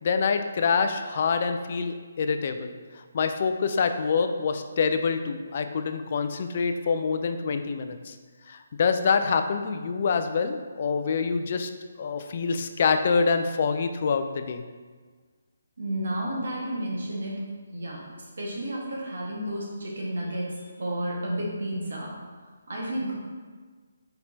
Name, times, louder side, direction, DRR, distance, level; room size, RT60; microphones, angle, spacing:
voice 1, 0.0-8.1 8.5-11.7 12.0-14.6, left 5 dB, 45° left, 8 dB, 0.3 m, -26 dB
voice 2, 15.8-17.4 17.7-18.0 18.4-22.1 22.7-23.1, right 1 dB, 65° right, -3 dB, 1.4 m, -31 dB
4.4 x 4.1 x 2.7 m, 1.5 s
figure-of-eight pair, 145°, 0 cm